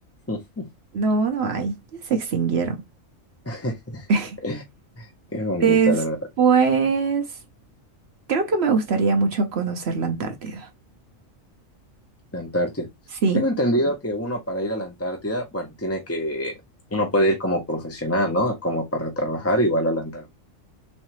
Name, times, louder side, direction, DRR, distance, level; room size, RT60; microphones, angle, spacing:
voice 1, 0.3-0.6 3.5-4.0 4.4-4.6 5.0-5.1 5.3-6.2 12.3-12.9 13.3-16.5 16.9-20.3, equal, 15° left, 0.5 m, -25 dB
voice 2, 0.9-2.8 4.1-4.4 5.6-6.0 6.4-7.3 8.3-10.7 13.2-13.4, right 5 dB, 60° right, 0.9 m, -22 dB
3.7 x 3.2 x 2.9 m
omnidirectional pair, 1.3 m